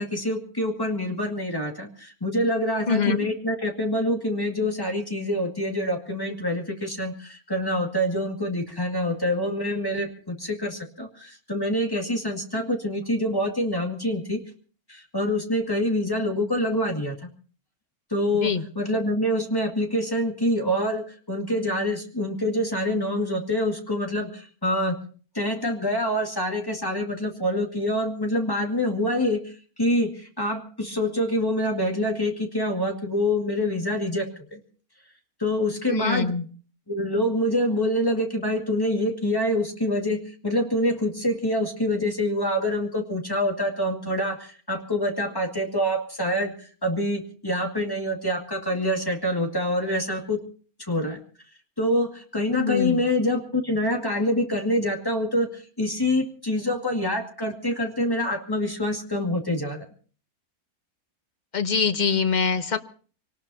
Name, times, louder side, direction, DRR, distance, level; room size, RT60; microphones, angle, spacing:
voice 1, 0.0-14.4 14.9-17.3 18.1-25.0 25.3-34.6 35.4-36.3 36.9-50.4 50.8-51.2 51.8-59.8, left 1 dB, 15° left, 2 dB, 2.2 m, -26 dB
voice 2, 2.9-3.2 18.4-18.6 35.9-36.4 52.5-53.0 61.5-62.8, left 5 dB, 35° left, 8 dB, 1.0 m, -24 dB
25.5 x 18.5 x 2.8 m, 0.41 s
omnidirectional pair, 1.5 m